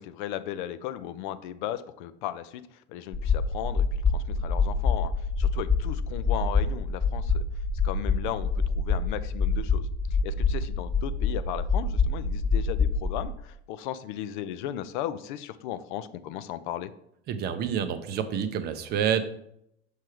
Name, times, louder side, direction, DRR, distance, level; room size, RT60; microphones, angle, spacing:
voice 1, 0.0-2.6 2.9-3.8 4.1-7.4 7.8-9.9 10.2-16.9, left 11 dB, 45° left, 13 dB, 0.4 m, -36 dB
sound 1, 3.1-13.3, left 4 dB, 10° left, 1.4 m, -26 dB
voice 2, 17.3-19.2, right 8 dB, 30° right, 10 dB, 0.5 m, -28 dB
6.2 x 3.3 x 4.8 m, 0.73 s
figure-of-eight pair, 85°, 34 cm